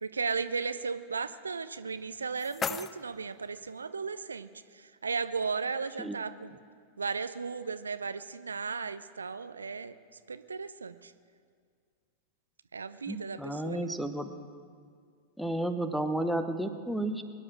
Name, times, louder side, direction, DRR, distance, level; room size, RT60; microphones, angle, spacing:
voice 1, 0.0-4.5 4.7-6.6 7.0-9.9 10.3-11.1 12.7-13.9, right 5 dB, 75° right, 13 dB, 0.4 m, -35 dB
sound 1, 1.9-3.9, left 7 dB, 20° left, 0.4 m, -39 dB
voice 2, 13.1-14.3 15.4-17.2, right 1 dB, ahead, 7 dB, 0.9 m, -32 dB
22.0 x 9.9 x 6.2 m, 2.1 s
figure-of-eight pair, 90°, 0 cm